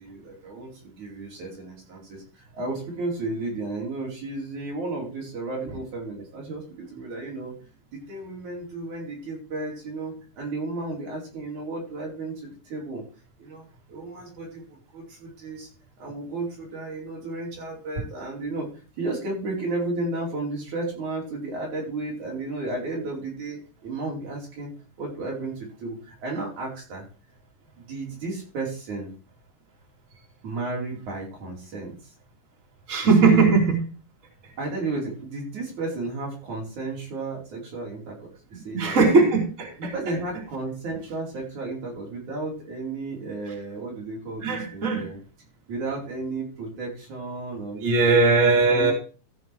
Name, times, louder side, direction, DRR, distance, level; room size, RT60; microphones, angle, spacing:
voice 1, 0.0-7.5 7.9-13.0 13.4-15.7 16.0-18.7 19.0-24.7 25.0-27.1 27.8-29.1 30.4-31.9 33.2-33.6 34.6-39.0 39.8-45.2 45.7-48.9, right 2 dB, 80° right, -2 dB, 6.0 m, -33 dB
voice 2, 32.9-33.8 38.7-39.7 44.4-45.0 47.8-48.9, right 4 dB, 25° right, 0 dB, 2.9 m, -19 dB
14.5 x 6.0 x 4.6 m, 0.36 s
omnidirectional pair, 3.4 m